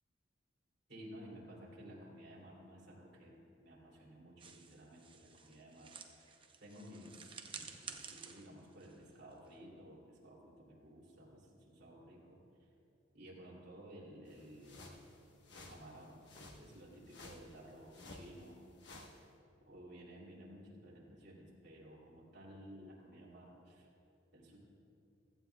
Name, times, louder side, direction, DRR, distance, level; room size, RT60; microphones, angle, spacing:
voice 1, 0.9-3.4 3.6-12.4 13.1-15.0 15.5-16.2 16.6-18.6 19.6-23.9 24.3-24.6, equal, 60° right, -4 dB, 2.8 m, -55 dB
sound 1, 4.4-9.7, right 5 dB, 25° right, 0.7 m, -52 dB
sound 2, 14.3-19.2, left 2 dB, 65° left, 1.2 m, -55 dB
16.0 x 14.0 x 2.3 m, 2.7 s
head